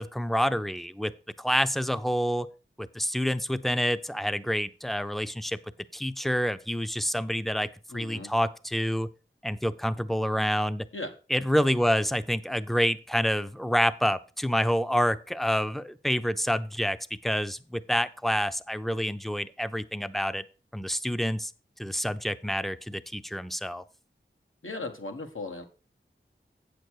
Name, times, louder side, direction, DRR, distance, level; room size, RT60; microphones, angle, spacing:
voice 1, 0.0-2.5 2.8-5.6 5.9-9.1 9.4-10.9 11.3-17.0 17.2-20.4 20.7-21.5 21.8-23.8, equal, ahead, 12 dB, 0.6 m, -28 dB
voice 2, 7.9-8.3 10.9-11.1 24.6-25.6, left 2 dB, 80° left, 4 dB, 1.5 m, -37 dB
8.6 x 6.8 x 4.7 m, 0.34 s
wide cardioid pair, 50°, 20 cm